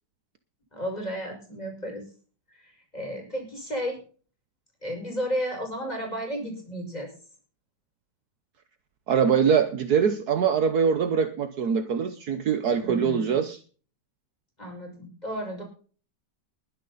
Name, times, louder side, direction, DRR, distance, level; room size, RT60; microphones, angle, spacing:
voice 1, 0.7-2.0 2.6-4.0 4.8-7.1 12.8-13.4 14.6-15.6, equal, 25° left, 6.4 m, -33 dB
voice 2, 9.1-13.6, right 7 dB, 65° right, 1.5 m, -23 dB
21.0 x 10.0 x 4.2 m
omnidirectional pair, 1.8 m